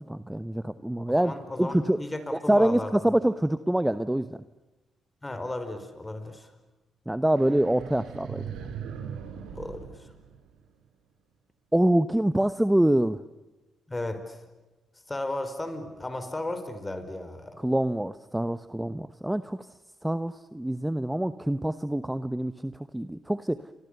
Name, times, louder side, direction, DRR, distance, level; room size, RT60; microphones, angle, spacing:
voice 1, 0.0-1.3 1.6-2.0 2.5-4.4 7.1-8.7 11.7-13.2 17.6-19.7 20.0-23.6, right 1 dB, 5° right, 12 dB, 1.0 m, -25 dB
voice 2, 1.2-2.9 5.2-6.5 9.5-10.1 13.9-14.4 15.1-17.6, left 2 dB, 15° left, 9 dB, 5.0 m, -35 dB
sound 1, 7.4-10.8, right 7 dB, 85° right, 4.6 m, -40 dB
29.0 x 25.5 x 6.9 m, 1.1 s
cardioid pair, 90°, 0 cm